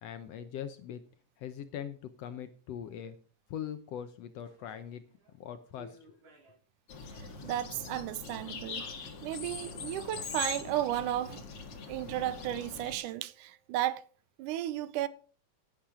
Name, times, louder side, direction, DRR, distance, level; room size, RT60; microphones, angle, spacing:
voice 1, 0.0-1.0 1.4-3.2 3.5-5.0 5.4-6.1, left 9 dB, 70° left, 1.6 m, -41 dB
sound 1, 4.4-5.4 5.7-6.6 6.9-13.2, right 1 dB, 65° right, 5.8 m, -61 dB
sound 2, 6.9-13.0, left 5 dB, 50° left, 2.4 m, -42 dB
voice 2, 7.4-8.9 9.2-11.4 11.9-14.0 14.4-15.1, right 13 dB, 85° right, 2.2 m, -34 dB
sound 3, 7.6-14.1, right 5 dB, 20° right, 3.6 m, -66 dB
10.5 x 10.5 x 5.0 m
omnidirectional pair, 3.6 m